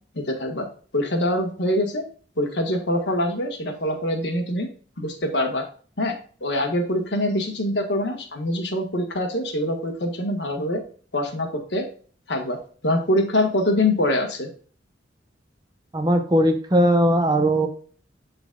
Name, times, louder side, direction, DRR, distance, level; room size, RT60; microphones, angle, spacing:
voice 1, 0.1-0.7 0.9-2.0 2.4-4.7 5.0-5.6 6.0-6.1 6.4-10.8 11.1-11.8 12.3-12.6 12.8-14.5, left 1 dB, 65° left, 3 dB, 1.5 m, -24 dB
voice 2, 15.9-17.7, right 1 dB, 20° right, 6 dB, 0.7 m, -19 dB
11.5 x 4.0 x 2.3 m, 0.42 s
head